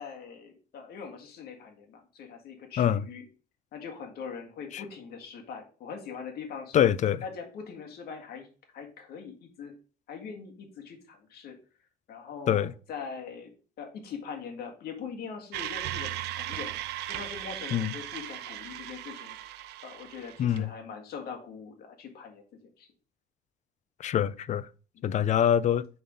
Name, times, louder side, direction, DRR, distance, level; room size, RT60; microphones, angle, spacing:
voice 1, 0.0-3.2 3.7-6.8 7.2-8.5 8.7-9.7 10.1-11.6 12.1-13.5 13.8-16.7 17.1-19.4 19.8-22.4 22.8-22.9 24.9-25.1, left 6 dB, 65° left, 1.7 m, -42 dB
voice 2, 6.7-7.2 12.5-12.7 17.7-17.9 20.4-20.7 24.0-24.7 25.0-25.9, left 9 dB, 45° left, 0.4 m, -24 dB
sound 1, 15.5-20.6, right 14 dB, 85° right, 0.5 m, -37 dB
5.3 x 4.0 x 5.0 m
cardioid pair, 110°, 17 cm